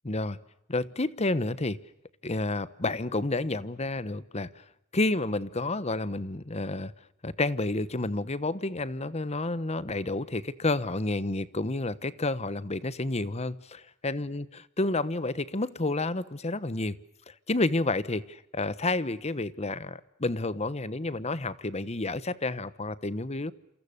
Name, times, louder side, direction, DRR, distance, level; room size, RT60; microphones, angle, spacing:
voice 1, 0.0-0.4 0.7-1.8 2.2-4.6 4.9-6.9 7.2-14.4 14.8-17.0 17.3-23.5, left 2 dB, 30° left, 16 dB, 1.1 m, -30 dB
28.5 x 28.0 x 6.8 m, 0.82 s
head